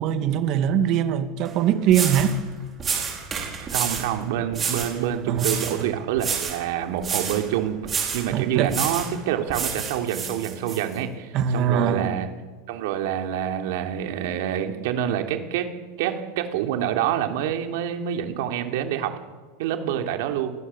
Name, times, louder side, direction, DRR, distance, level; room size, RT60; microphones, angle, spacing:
voice 1, 0.0-2.4 5.3-5.9 8.3-8.8 11.3-12.2, right 8 dB, 35° right, 2.1 m, -22 dB
sound 1, 1.5-1.6 1.9-2.3 2.8-4.1 4.5-4.9 5.4-5.8 6.2-6.6 7.0-7.4 7.8-8.3 8.7-9.1 9.5-10.8, right 6 dB, 20° right, 5.0 m, -28 dB
voice 2, 3.6-7.8 8.1-12.3 12.7-15.7 16.0-19.1 19.6-20.5, right 10 dB, 60° right, 3.2 m, -27 dB
28.0 x 20.5 x 7.3 m
supercardioid pair, 170°, 0 cm